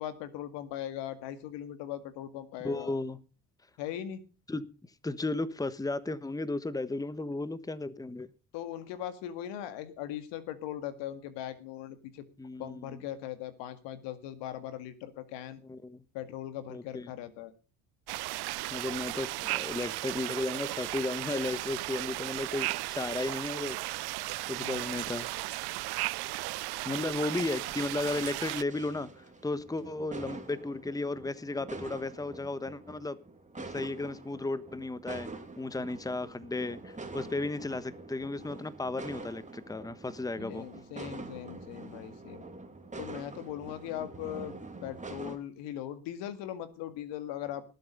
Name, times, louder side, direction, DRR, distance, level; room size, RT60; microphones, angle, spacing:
voice 1, 0.0-2.9 3.8-4.2 8.5-12.2 12.6-15.6 16.1-17.5 24.6-25.1 35.7-35.8 40.4-42.4 43.0-44.6 44.8-47.6, left 11 dB, 80° left, 2.0 m, -39 dB
voice 2, 2.6-3.2 4.5-4.6 5.0-8.3 12.4-13.0 15.6-16.0 16.7-17.1 18.7-23.8 24.5-25.3 26.8-33.2 33.6-35.3 35.6-40.7, left 2 dB, 10° left, 1.1 m, -34 dB
sound 1, 18.1-28.6, right 20 dB, 65° right, 0.6 m, -35 dB
sound 2, 28.7-45.4, right 3 dB, 15° right, 2.8 m, -45 dB
19.0 x 7.9 x 5.3 m
supercardioid pair, 75°, 42 cm